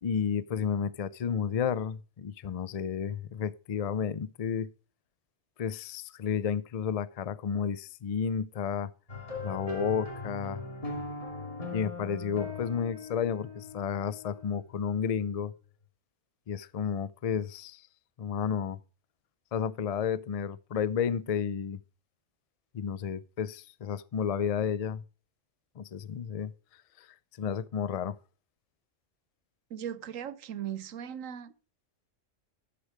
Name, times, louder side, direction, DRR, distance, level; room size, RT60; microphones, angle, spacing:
voice 1, 0.0-4.7 5.6-8.9 9.4-10.6 11.7-15.5 16.5-17.8 18.2-18.8 19.5-21.8 22.7-25.0 25.8-26.5 27.4-28.1, left 7 dB, 65° left, 0.3 m, -31 dB
sound 1, 9.1-14.7, left 3 dB, 30° left, 2.2 m, -39 dB
voice 2, 29.7-31.5, right 9 dB, 90° right, 1.2 m, -38 dB
10.0 x 7.6 x 4.7 m
omnidirectional pair, 1.3 m